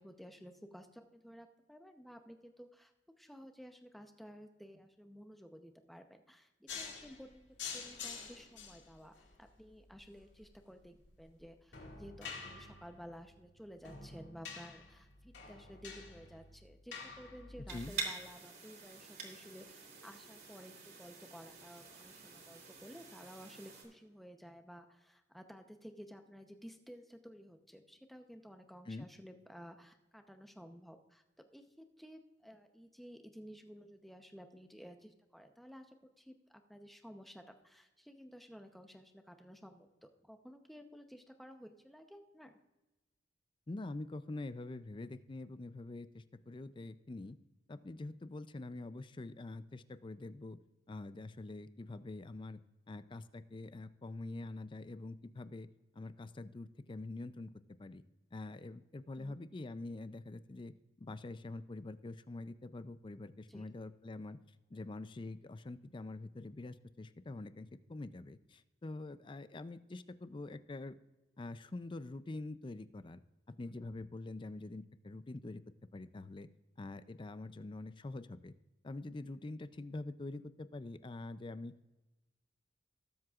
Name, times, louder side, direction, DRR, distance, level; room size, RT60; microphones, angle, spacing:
voice 1, 0.0-2.9 3.2-31.2 31.5-42.5 59.1-59.4 63.5-63.7, equal, ahead, 6 dB, 0.8 m, -54 dB
sound 1, 6.7-17.9, left 5 dB, 85° left, 2.0 m, -49 dB
voice 2, 17.6-17.9 28.9-29.1 43.7-47.4 47.7-50.6 50.9-52.6 52.9-55.7 55.9-57.5 57.8-58.0 58.3-64.4 64.7-70.9 71.4-73.2 73.5-75.6 75.9-76.5 76.8-78.5 78.8-81.7, left 2 dB, 30° left, 13 dB, 0.4 m, -45 dB
sound 2, 17.7-23.8, right 4 dB, 55° right, 2.6 m, -47 dB
18.5 x 7.7 x 2.4 m, 1.1 s
head